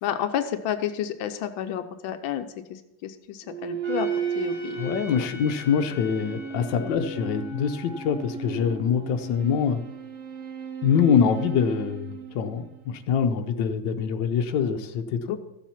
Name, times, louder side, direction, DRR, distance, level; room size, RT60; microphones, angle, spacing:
voice 1, 0.0-4.1 4.3-4.8 5.2-5.3 6.8-7.1 9.0-9.1 15.3-15.4, left 10 dB, 90° left, 8 dB, 1.5 m, -31 dB
sound 1, 3.4-13.1, right 6 dB, 55° right, 0.8 m, -35 dB
Trumpet, 3.8-9.0, left 4 dB, 35° right, 2.8 m, -45 dB
voice 2, 4.8-9.8 10.8-15.4, left 7 dB, 70° left, 6 dB, 1.5 m, -24 dB
14.0 x 7.2 x 5.8 m, 0.95 s
omnidirectional pair, 2.1 m